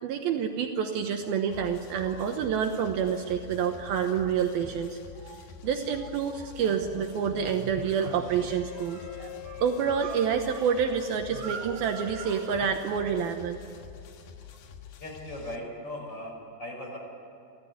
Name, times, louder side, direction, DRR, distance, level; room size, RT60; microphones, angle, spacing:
voice 1, 0.0-5.0 5.2-13.6, right 7 dB, 75° right, 5 dB, 2.6 m, -28 dB
sound 1, 1.5-15.6, left 8 dB, 70° left, 3.3 m, -48 dB
Wind instrument woodwind instrument, 8.5-13.6, left 13 dB, 90° left, 3.0 m, -45 dB
voice 2, 15.0-17.0, left 1 dB, 25° left, 1 dB, 5.4 m, -38 dB
29.5 x 14.0 x 9.4 m, 2.9 s
omnidirectional pair, 4.8 m